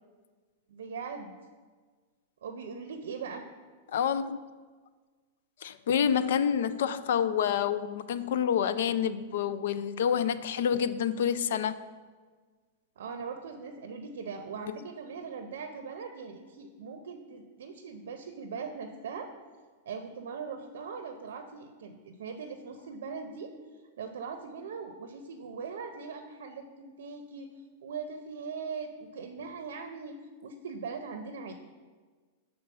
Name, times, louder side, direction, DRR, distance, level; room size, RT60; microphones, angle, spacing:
voice 1, 0.7-1.3 2.4-3.5 13.0-19.3 19.9-23.5 24.0-27.5 27.8-30.2 30.4-31.5, right 5 dB, 85° right, 0.6 m, -40 dB
voice 2, 3.9-4.4 5.6-11.7, left 8 dB, 60° left, 0.3 m, -28 dB
6.8 x 4.0 x 6.5 m
supercardioid pair, 180°, 0 cm